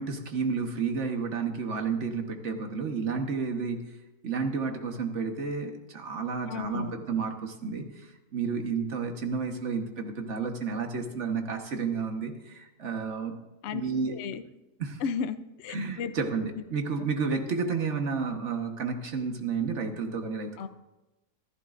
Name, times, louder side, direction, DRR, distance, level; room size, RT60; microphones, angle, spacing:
voice 1, 0.0-4.0 4.2-13.4 13.7-14.1 14.8-15.0 15.7-20.7, right 5 dB, 45° right, 4 dB, 1.5 m, -31 dB
voice 2, 6.5-7.0 13.6-13.8 14.1-14.4 15.0-16.1 20.6-20.7, left 6 dB, 60° left, 11 dB, 0.7 m, -34 dB
25.5 x 11.5 x 2.6 m, 1.0 s
omnidirectional pair, 1.8 m